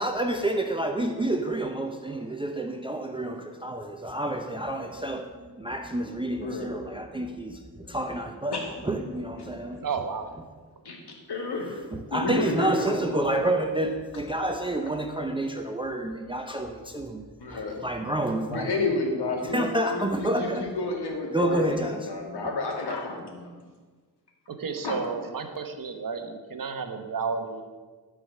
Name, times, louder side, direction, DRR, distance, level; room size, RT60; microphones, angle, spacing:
voice 1, 0.0-9.8 11.9-18.7 19.4-20.7 21.3-22.1, right 1 dB, 10° right, 4 dB, 0.6 m, -29 dB
voice 2, 6.3-6.7 8.5-9.1 9.4-9.5 10.8-11.9 12.1-13.6 17.4-17.8 18.5-19.6 19.9-23.6 24.8-25.0, left 3 dB, 60° left, 0 dB, 2.4 m, -31 dB
voice 3, 9.8-10.3 12.8-13.3 24.5-27.6, right 5 dB, 45° right, 6 dB, 1.1 m, -32 dB
13.0 x 4.9 x 6.5 m, 1.4 s
cardioid pair, 105°, 44 cm